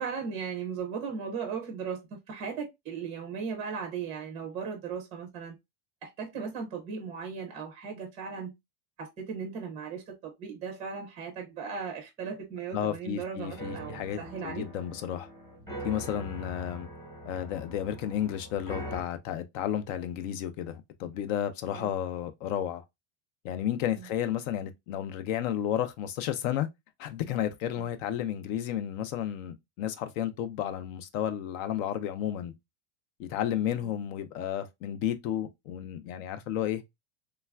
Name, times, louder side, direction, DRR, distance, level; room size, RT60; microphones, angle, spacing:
voice 1, 0.0-5.5 6.0-8.5 9.0-14.6 21.7-21.9 23.9-24.1 27.7-27.9 33.8-33.9, right 6 dB, 15° right, 0.4 m, -37 dB
voice 2, 12.7-15.3 15.8-16.9 17.2-22.8 23.4-26.7 27.0-32.5 33.2-36.8, left 10 dB, 65° left, 0.6 m, -32 dB
sound 1, 13.4-19.0, equal, 10° left, 0.8 m, -42 dB
3.2 x 2.3 x 2.2 m
supercardioid pair, 160°, 43 cm